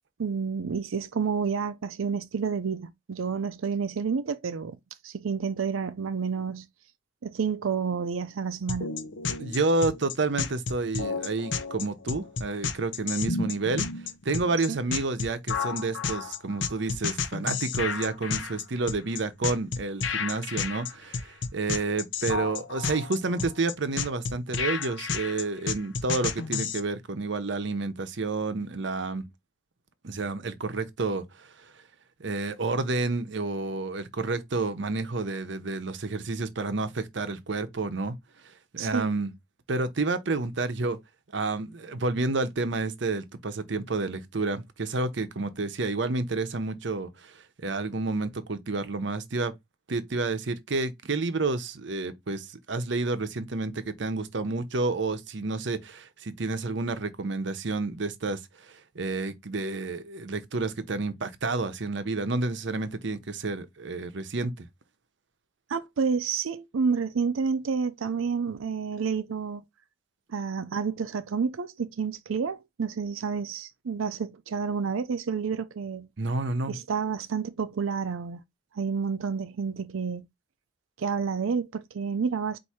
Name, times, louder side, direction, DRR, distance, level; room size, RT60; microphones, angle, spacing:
voice 1, 0.2-4.8 5.0-6.7 7.2-8.9 14.7-14.8 38.8-39.2 65.7-69.6 70.3-76.1 76.7-78.4 78.7-80.2 81.0-82.6, right 5 dB, 85° right, 0.5 m, -29 dB
sound 1, 8.7-26.8, left 5 dB, 65° left, 0.6 m, -31 dB
voice 2, 9.4-13.9 14.2-29.2 30.0-31.7 32.2-38.2 38.7-39.3 39.7-41.0 41.3-49.5 49.9-64.7 76.2-76.8, right 3 dB, 60° right, 0.8 m, -30 dB
4.7 x 2.6 x 4.2 m
head